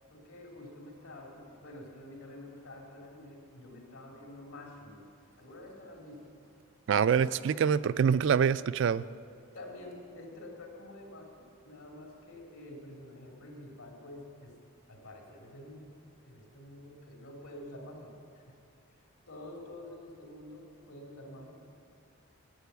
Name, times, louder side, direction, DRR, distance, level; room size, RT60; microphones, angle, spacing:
voice 1, 0.1-5.0 5.4-6.5 9.5-14.6 14.9-18.6 18.9-19.0 19.3-21.5, left 1 dB, 80° left, -1 dB, 3.0 m, -48 dB
voice 2, 6.9-9.0, right 7 dB, 60° right, 17 dB, 0.3 m, -25 dB
11.5 x 9.0 x 8.1 m, 2.3 s
head